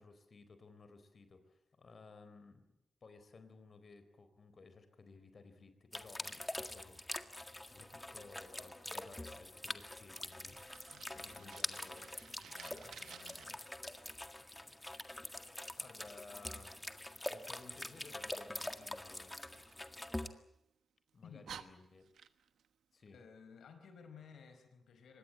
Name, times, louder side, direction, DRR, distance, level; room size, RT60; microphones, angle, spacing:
voice 1, 0.0-2.7 3.0-12.0 12.4-12.5 12.8-13.0 14.4-15.1 15.5-16.9 17.3-19.4 21.1-22.1 22.9-23.2, left 4 dB, 50° left, 10 dB, 4.1 m, -58 dB
sound 1, 5.9-20.3, left 1 dB, 15° left, 1.8 m, -45 dB
Fire, 10.5-13.4 19.4-20.6 21.1-21.2 21.4-22.7, right 8 dB, 90° right, 1.2 m, -55 dB
voice 2, 10.9-12.1 12.4-13.6 15.8-15.9 21.2-21.4 23.1-25.2, left 6 dB, 85° left, 8 dB, 4.6 m, -57 dB
24.5 x 19.5 x 8.7 m, 0.81 s
cardioid pair, 75°, 0 cm